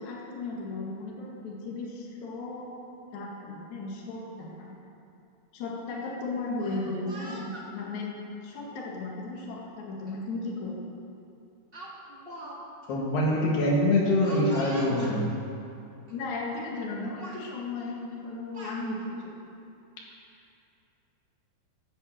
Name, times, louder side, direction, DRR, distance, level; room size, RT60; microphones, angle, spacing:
voice 1, 0.0-2.7 3.1-4.7 5.5-8.1 8.4-10.8 16.1-19.3, left 3 dB, 55° left, -3 dB, 2.8 m, -35 dB
Speech, 6.6-7.7 8.6-8.8 10.1-10.2 10.5-10.8 11.7-12.6 12.8-12.9 14.2-15.2 16.1-16.2 16.5-16.9 17.2-17.4 18.2-18.8, right 1 dB, 30° right, 0.9 m, -43 dB
voice 2, 12.9-15.3, left 1 dB, 75° left, -2 dB, 3.7 m, -24 dB
13.0 x 8.1 x 7.8 m, 2.6 s
omnidirectional pair, 4.7 m